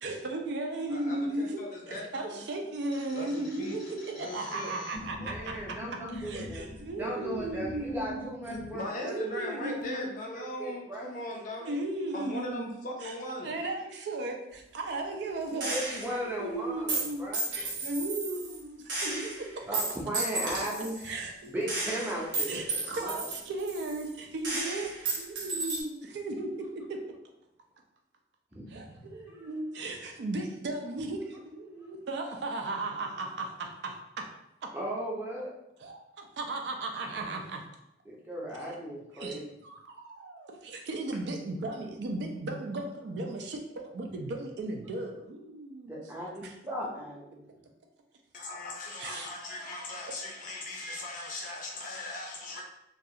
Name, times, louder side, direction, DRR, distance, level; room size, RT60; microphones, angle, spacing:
voice 1, 0.0-8.2 9.0-10.1 11.3-17.3 17.5-19.6 21.0-27.0 28.7-34.3 35.8-37.6 38.6-38.8 39.1-46.5 49.0-49.3 49.8-50.2, right 2 dB, 60° right, 3 dB, 0.3 m, -36 dB
voice 2, 0.9-2.4 3.1-3.8 4.2-4.7 8.7-11.8 12.1-13.5 48.3-52.6, left 2 dB, 45° left, 0 dB, 0.5 m, -39 dB
sound 1, 2.9-8.7, left 1 dB, 85° left, 0.7 m, -44 dB
voice 3, 5.2-11.1 15.5-17.5 19.7-21.1 21.4-23.2 28.5-29.5 34.7-35.5 38.1-39.5 45.9-47.4, right 1 dB, 10° right, -4 dB, 0.5 m, -37 dB
Gunshot gunfire, 15.6-16.2 16.9-18.6 18.9-21.1 21.7-24.2 24.4-25.8, right 2 dB, 80° right, 0.8 m, -33 dB
2.4 x 2.3 x 2.7 m, 0.84 s
head